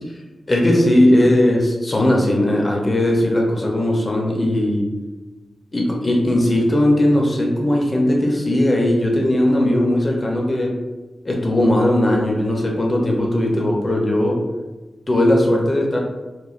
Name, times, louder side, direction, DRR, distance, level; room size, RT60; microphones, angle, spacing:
voice 1, 0.5-4.9 5.7-10.8 11.2-14.4 15.1-16.0, left 1 dB, 40° left, -1 dB, 0.6 m, -18 dB
3.1 x 2.2 x 2.4 m, 1.2 s
cardioid pair, 45°, 0 cm